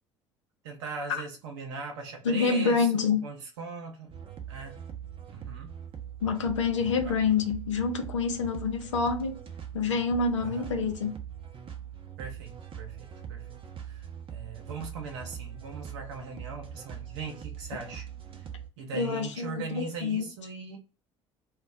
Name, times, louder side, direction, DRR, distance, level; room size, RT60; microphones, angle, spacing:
voice 1, 0.6-4.2 4.5-4.8 5.3-5.8 6.7-7.1 10.4-10.8 12.2-13.5 13.8-18.1 18.8-20.8, right 5 dB, 75° right, 0.9 m, -40 dB
voice 2, 2.2-3.2 6.2-9.4 9.7-11.2 18.9-20.3, left 5 dB, 85° left, 0.6 m, -27 dB
sound 1, 4.1-18.7, right 9 dB, 35° right, 0.7 m, -42 dB
2.3 x 2.1 x 3.9 m
hypercardioid pair, 60°, 15 cm